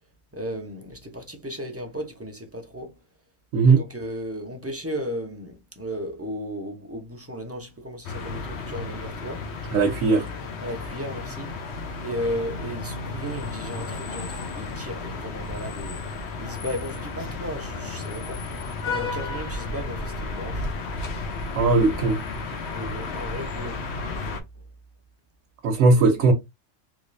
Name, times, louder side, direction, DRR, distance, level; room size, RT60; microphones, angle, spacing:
voice 1, 0.3-3.0 3.6-9.5 10.6-11.5 12.0-16.1 16.4-18.5 18.8-20.7 21.1-21.3 22.7-23.8, equal, 20° right, 0.3 m, -35 dB
sound 1, 8.0-24.4, left 3 dB, 65° left, 0.9 m, -33 dB
voice 2, 9.7-10.2 21.5-22.2 25.6-26.3, right 3 dB, 80° right, 1.1 m, -18 dB
3.2 x 2.8 x 2.5 m
omnidirectional pair, 1.3 m